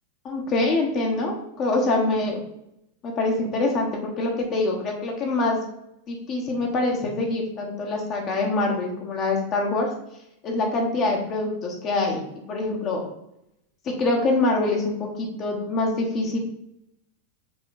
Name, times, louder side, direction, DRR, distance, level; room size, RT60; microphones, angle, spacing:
voice 1, 0.2-2.4 3.0-5.6 6.1-9.9 10.4-12.2 12.5-13.1 13.8-16.4, left 2 dB, 30° left, 0 dB, 1.4 m, -25 dB
6.1 x 4.4 x 4.0 m, 0.81 s
figure-of-eight pair, 90°, 0 cm